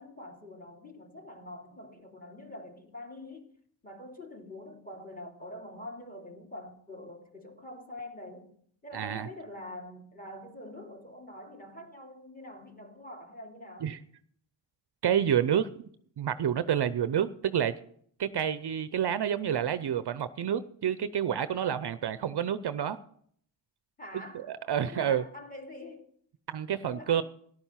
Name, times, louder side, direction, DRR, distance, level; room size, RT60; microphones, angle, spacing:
voice 1, 0.0-3.5 3.8-8.5 8.8-13.9 24.0-24.5 24.8-26.1 26.9-27.2, left 1 dB, 15° left, 2.9 m, -45 dB
voice 2, 8.9-9.3 13.8-14.0 15.0-15.7 16.2-17.7 18.2-23.0 24.5-25.2 26.5-27.2, right 9 dB, 55° right, 0.7 m, -28 dB
13.5 x 11.0 x 5.7 m
cardioid pair, 70°, 49 cm